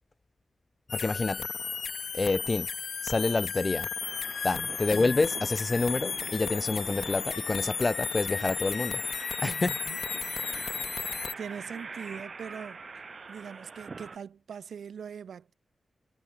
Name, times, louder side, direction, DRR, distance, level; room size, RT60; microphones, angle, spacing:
sound 1, 0.9-11.3, left 6 dB, 75° left, 0.4 m, -34 dB
voice 1, 0.9-1.5 2.1-2.7 3.0-3.9 4.4-9.0 9.4-9.7, left 3 dB, 40° left, 1.1 m, -28 dB
sound 2, 4.0-14.2, right 4 dB, 55° right, 6.5 m, -44 dB
voice 2, 9.4-10.0 11.1-12.8 13.3-15.5, right 7 dB, 85° right, 2.0 m, -42 dB
cardioid pair, 50°, 0 cm